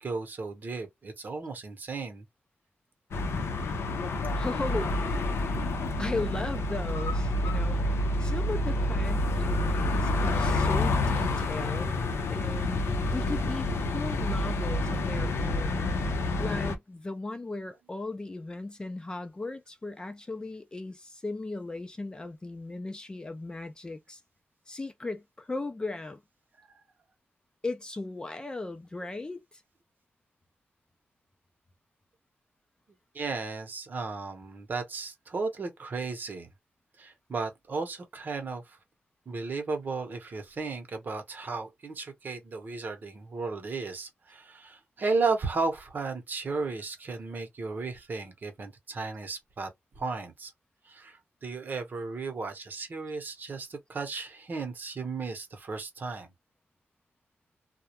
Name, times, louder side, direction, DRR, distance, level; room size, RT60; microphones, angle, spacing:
voice 1, 0.0-2.2 33.1-36.5 37.0-38.8 39.3-49.7 50.0-50.5 50.8-56.3, right 4 dB, 45° right, 0.8 m, -34 dB
sound 1, 3.1-16.8, left 2 dB, 75° left, 0.5 m, -28 dB
voice 2, 4.4-5.2 6.0-12.0 12.3-12.8 13.1-15.9 16.4-24.2 24.7-26.2 27.6-29.6, left 2 dB, 20° left, 0.4 m, -37 dB
2.3 x 2.1 x 2.8 m
wide cardioid pair, 135°, 4 cm